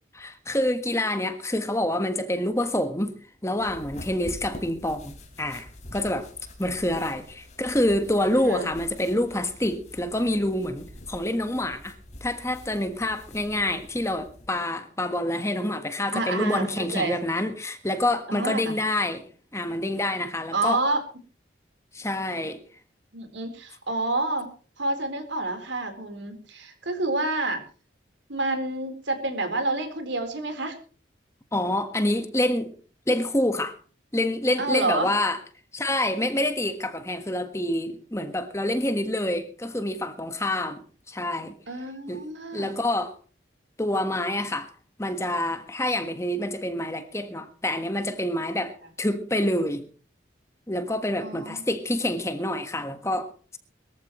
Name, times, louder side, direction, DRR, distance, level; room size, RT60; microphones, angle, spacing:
voice 1, 0.1-3.1 3.4-6.3 6.6-11.9 12.2-19.3 19.5-20.8 21.9-22.6 31.5-32.7 33.1-33.7 34.1-35.4 35.7-40.8 41.1-41.5 42.1-42.2 42.5-43.1 43.8-44.7 45.0-49.9 50.7-53.6, left 1 dB, 15° left, 1.4 m, -27 dB
wiping hands in towel, 3.6-14.5, left 1 dB, 35° left, 3.8 m, -46 dB
voice 2, 8.3-8.7 16.1-17.2 18.3-18.8 20.5-21.0 23.1-24.5 24.8-27.6 28.3-30.8 34.6-35.1 41.7-42.8 51.2-51.6, right 2 dB, 75° right, 4.1 m, -28 dB
22.5 x 14.0 x 3.2 m
head